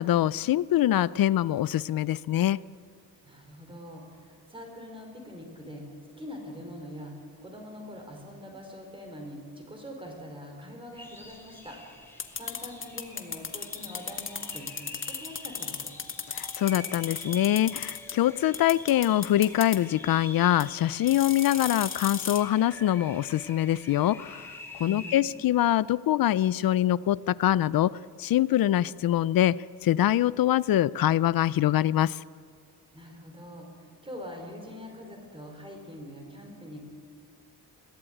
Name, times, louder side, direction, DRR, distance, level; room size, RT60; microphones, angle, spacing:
voice 1, 0.0-2.6 16.3-24.5 24.8-32.2, left 12 dB, 60° left, 20 dB, 0.5 m, -24 dB
voice 2, 3.2-5.8 6.2-7.1 7.4-11.8 12.4-15.9 24.8-25.4 32.9-36.9, equal, 15° right, 2 dB, 4.4 m, -43 dB
sound 1, 10.9-25.2, left 2 dB, 5° left, 3.0 m, -46 dB
sound 2, 12.2-18.1 18.5-19.8 20.6-20.7 21.1-22.4, left 6 dB, 30° left, 1.3 m, -35 dB
22.0 x 16.0 x 9.2 m, 2.2 s
wide cardioid pair, 165°, 39 cm